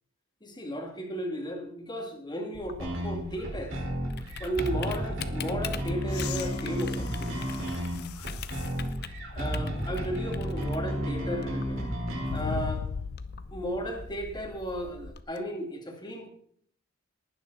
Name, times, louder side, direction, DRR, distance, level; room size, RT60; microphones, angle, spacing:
voice 1, 0.4-3.8 4.4-7.4 9.3-11.8 12.3-12.9 13.5-16.3, equal, 20° left, 2 dB, 2.4 m, -34 dB
Typing, 2.5-15.2, left 4 dB, 50° left, 0.8 m, -43 dB
sound 1, 2.8-12.4, equal, 60° right, 5.0 m, -33 dB
sound 2, 6.1-8.8 9.5-9.6 12.3-13.5 15.4-15.5, left 6 dB, 85° left, 0.4 m, -37 dB
19.0 x 9.6 x 4.2 m, 0.65 s
head